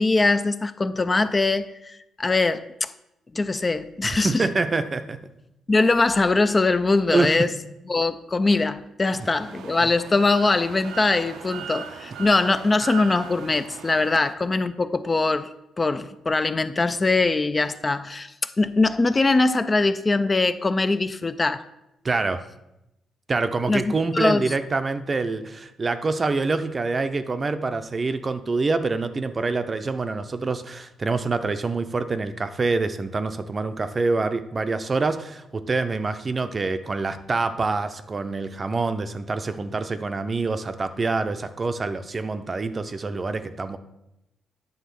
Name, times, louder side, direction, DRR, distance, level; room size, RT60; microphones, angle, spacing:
voice 1, 0.0-2.9 3.3-4.5 5.7-7.5 7.9-15.5 15.8-21.6 23.7-24.4, left 3 dB, 25° left, 0.4 m, -22 dB
voice 2, 4.0-5.2 7.1-7.5 9.8-9.9 22.0-22.5 23.3-43.8, right 3 dB, 30° right, 0.6 m, -26 dB
sound 1, 9.1-14.3, right 8 dB, 75° right, 0.6 m, -39 dB
9.4 x 3.6 x 6.9 m
cardioid pair, 90°, 0 cm